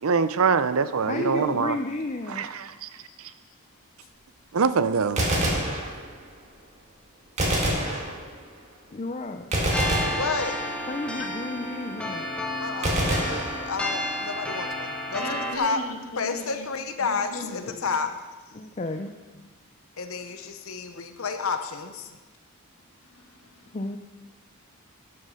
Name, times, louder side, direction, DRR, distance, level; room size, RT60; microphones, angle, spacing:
voice 1, 0.0-1.8 2.3-2.9 4.5-5.3, right 5 dB, 75° right, 13 dB, 0.6 m, -24 dB
voice 2, 1.1-2.5 8.9-9.5 10.9-12.3 17.7-17.8 18.5-19.1 23.7-24.0, left 2 dB, 30° left, 5 dB, 0.5 m, -32 dB
Gunshot gunfire, 5.2-6.4 7.4-8.6 9.5-10.9 12.8-14.2, right 1 dB, 30° right, 1.9 m, -27 dB
sound 1, 9.7-15.6, left 1 dB, 5° left, 1.2 m, -31 dB
voice 3, 10.2-10.6 12.6-15.2 15.5-15.8 16.2-18.1 20.0-22.1, left 4 dB, 70° left, 7 dB, 0.8 m, -30 dB
voice 4, 15.1-16.7 17.0-17.8 23.0-23.6, left 1 dB, 85° left, 3 dB, 1.7 m, -38 dB
12.0 x 6.9 x 5.6 m, 1.2 s
head